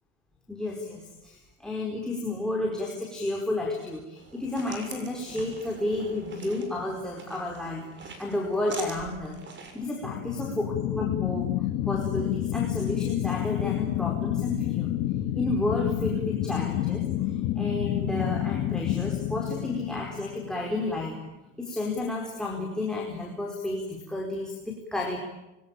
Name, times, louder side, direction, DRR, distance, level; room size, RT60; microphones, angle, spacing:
voice 1, 0.5-14.9 15.3-21.2 21.6-25.2, left 2 dB, ahead, -1 dB, 4.6 m, -32 dB
sound 1, 4.2-9.8, right 4 dB, 35° right, 6.6 m, -44 dB
sound 2, 10.0-20.9, left 13 dB, 65° left, 2.0 m, -29 dB
27.5 x 24.0 x 8.8 m, 1.0 s
cardioid pair, 135°, 33 cm